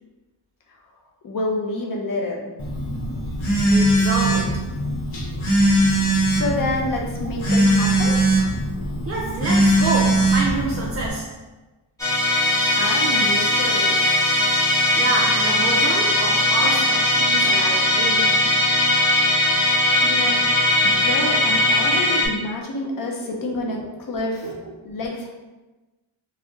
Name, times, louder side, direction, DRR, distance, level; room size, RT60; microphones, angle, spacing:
voice 1, 1.2-2.5 6.4-8.3 12.8-14.0 20.0-20.4 20.8-24.5 24.8-25.3, left 2 dB, 45° left, 0 dB, 0.7 m, -28 dB
Telephone, 2.6-11.1, right 1 dB, 80° left, 0.9 m, -20 dB
voice 2, 3.6-4.7 9.1-11.4 15.0-18.4 20.2-20.4 23.4-23.6 24.4-24.7, right 2 dB, 35° right, -4 dB, 0.4 m, -27 dB
Musical instrument, 12.0-22.3, left 1 dB, 5° left, 0.9 m, -19 dB
2.6 x 2.1 x 3.5 m, 1.1 s
wide cardioid pair, 95°, 47 cm